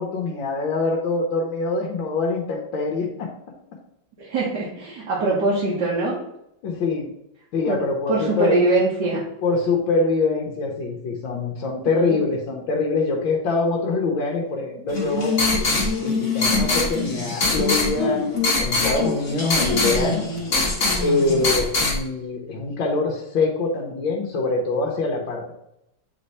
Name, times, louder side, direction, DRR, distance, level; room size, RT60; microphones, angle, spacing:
voice 1, 0.0-3.3 6.6-7.1 7.5-8.6 9.4-15.4 16.0-18.2 18.6-20.3 21.0-25.5, left 3 dB, 80° left, 0 dB, 1.7 m, -24 dB
voice 2, 4.2-6.2 7.7-7.8 8.1-9.2 12.1-12.2, right 2 dB, 65° right, -6 dB, 1.9 m, -22 dB
sound 1, 14.9-22.0, left 3 dB, 40° left, 1.6 m, -22 dB
8.3 x 3.3 x 4.1 m, 0.82 s
omnidirectional pair, 2.1 m